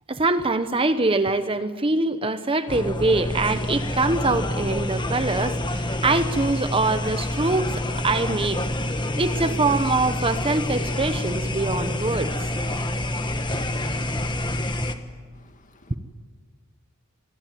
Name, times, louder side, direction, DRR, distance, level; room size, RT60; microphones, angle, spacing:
voice 1, 0.1-8.6 9.1-12.3 13.5-13.6, right 3 dB, 25° right, 10 dB, 0.9 m, -24 dB
sound 1, 2.7-14.9, left 1 dB, 20° left, 1.4 m, -27 dB
voice 2, 15.3-16.0, left 1 dB, 35° left, 6 dB, 2.1 m, -53 dB
26.0 x 21.0 x 9.4 m, 1.5 s
head